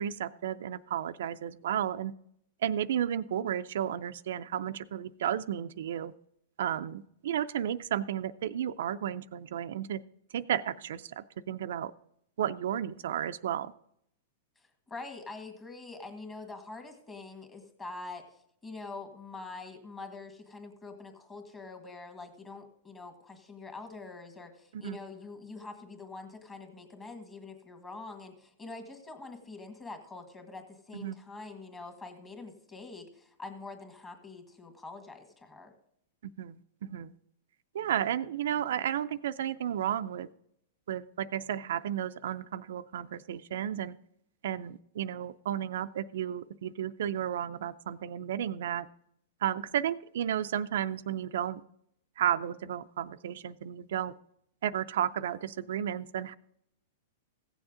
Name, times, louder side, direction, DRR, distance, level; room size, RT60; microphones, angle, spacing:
voice 1, 0.0-2.1 2.6-6.1 6.6-10.0 10.3-11.9 12.4-13.7 24.7-25.0 30.9-31.2 36.4-37.1 37.7-40.3 40.9-44.0 44.4-48.9 49.4-51.6 52.2-54.2 54.6-56.4, right 10 dB, 75° right, 11 dB, 0.4 m, -33 dB
voice 2, 14.9-18.3 18.6-35.7, left 3 dB, 15° left, 5 dB, 1.7 m, -45 dB
16.0 x 7.2 x 3.8 m, 0.73 s
hypercardioid pair, 140°, 0 cm